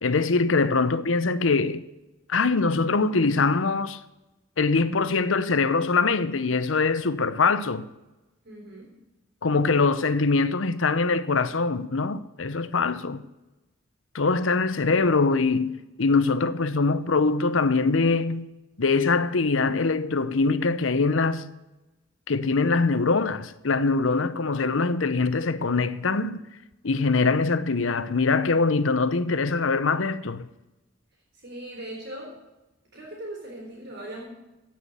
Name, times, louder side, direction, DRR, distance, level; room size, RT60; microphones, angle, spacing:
voice 1, 0.0-1.8 2.3-4.0 4.6-7.9 9.4-13.2 14.1-18.5 18.8-21.4 22.3-26.5 26.8-30.5, left 4 dB, 80° left, 0.8 m, -23 dB
voice 2, 8.4-8.9 31.3-32.4 32.9-34.3, right 1 dB, 55° right, 3.8 m, -39 dB
15.5 x 5.9 x 8.3 m
head